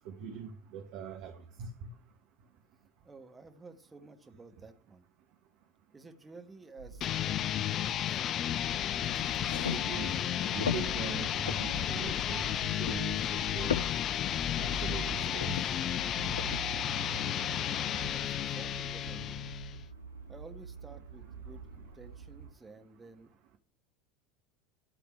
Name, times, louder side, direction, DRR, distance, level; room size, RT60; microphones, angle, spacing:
voice 1, 0.0-1.7 9.1-9.2 9.7-10.2 10.5-12.5 12.8-13.7 14.6-15.7, right 6 dB, 50° right, 1.4 m, -41 dB
voice 2, 3.0-5.1 5.9-8.4 17.7-19.4 20.3-23.6, right 3 dB, 15° right, 1.5 m, -53 dB
sound 1, 6.8-22.5, right 4 dB, 85° right, 1.0 m, -46 dB
sound 2, 7.0-19.8, left 10 dB, 35° left, 0.4 m, -33 dB
sound 3, 8.5-16.6, left 7 dB, 70° left, 0.7 m, -39 dB
12.5 x 4.2 x 8.3 m
figure-of-eight pair, 75°, 0 cm